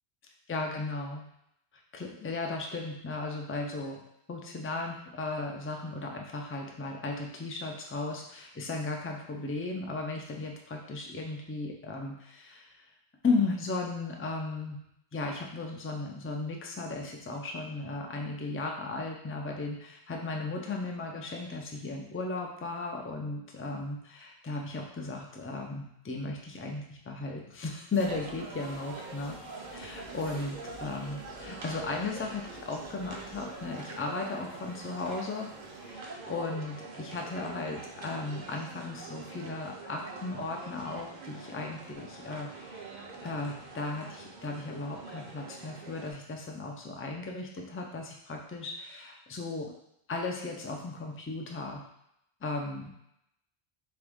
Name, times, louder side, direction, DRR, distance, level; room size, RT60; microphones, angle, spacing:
voice 1, 0.5-1.2 1.9-4.0 4.3-12.7 13.2-14.8 15.1-35.5 35.8-42.9 43.2-49.7 50.1-51.8 52.4-52.9, left 3 dB, 20° left, 1 dB, 0.3 m, -36 dB
sound 1, 27.9-35.9, left 3 dB, 45° left, 0.8 m, -54 dB
sound 2, 28.0-46.1, right 3 dB, 50° right, 0.7 m, -44 dB
3.7 x 3.4 x 3.5 m, 0.78 s
omnidirectional pair, 1.1 m